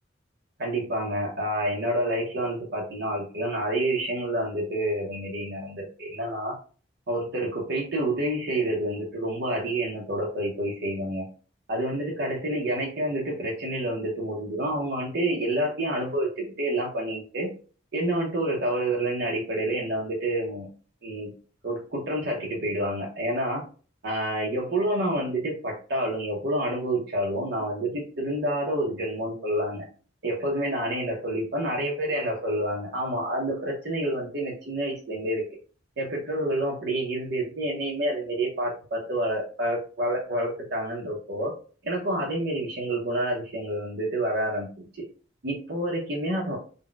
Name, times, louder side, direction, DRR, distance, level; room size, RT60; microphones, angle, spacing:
voice 1, 0.6-6.6 7.1-11.3 11.7-17.5 17.9-20.7 21.0-21.3 21.6-23.6 24.0-29.9 30.2-35.4 36.0-41.5 41.8-45.0 45.4-46.6, right 1 dB, 60° right, -2 dB, 0.7 m, -28 dB
3.9 x 2.1 x 2.2 m, 0.39 s
head